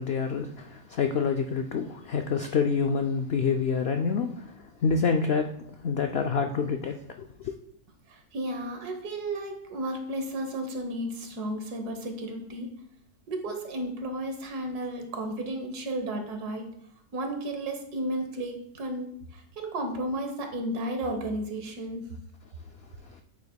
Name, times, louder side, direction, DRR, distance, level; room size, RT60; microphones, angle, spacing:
voice 1, 0.0-4.4 4.8-5.5 5.8-7.5, left 5 dB, 85° left, 5 dB, 0.5 m, -27 dB
voice 2, 8.1-12.7 13.3-16.6 17.1-19.1 19.3-22.0, right 1 dB, 80° right, 4 dB, 1.7 m, -33 dB
8.4 x 8.1 x 2.3 m, 0.69 s
omnidirectional pair, 1.6 m